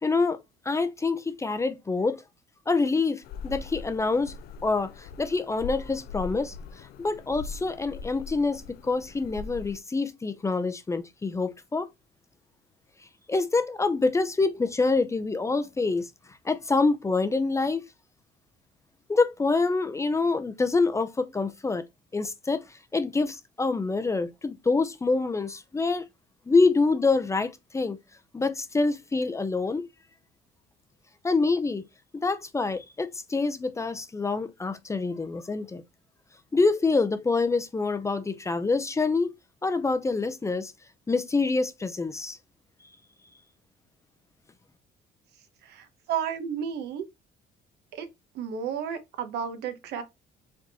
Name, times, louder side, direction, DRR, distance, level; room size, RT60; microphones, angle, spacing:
voice 1, 0.0-0.4 0.7-2.2 2.7-4.3 4.6-6.6 7.0-11.9 13.3-16.1 16.4-17.8 19.1-21.8 22.1-22.6 22.9-26.0 26.5-28.0 28.3-29.9 31.2-31.9 32.1-35.8 36.5-39.3 39.6-40.7 41.1-42.4, left 3 dB, 15° left, 0.5 m, -26 dB
sound 1, 3.2-9.8, left 5 dB, 65° left, 0.4 m, -41 dB
voice 2, 45.6-47.0 47.9-48.1 48.3-50.0, right 8 dB, 75° right, 1.0 m, -32 dB
4.8 x 3.5 x 2.9 m
cardioid pair, 110°, 17 cm